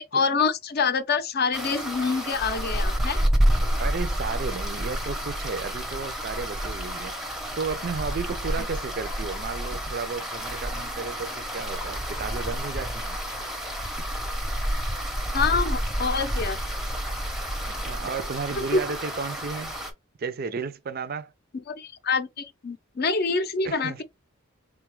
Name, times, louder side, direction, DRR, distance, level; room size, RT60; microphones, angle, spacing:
voice 1, 0.0-3.2 15.3-16.6 18.7-18.8 21.7-24.0, left 4 dB, 45° left, 0.5 m, -26 dB
sound 1, 1.5-19.9, equal, ahead, 0.6 m, -29 dB
voice 2, 3.8-7.1 7.6-13.2 17.6-19.7 20.2-21.3 23.6-24.0, right 5 dB, 45° right, 0.4 m, -33 dB
3.9 x 2.3 x 3.0 m
head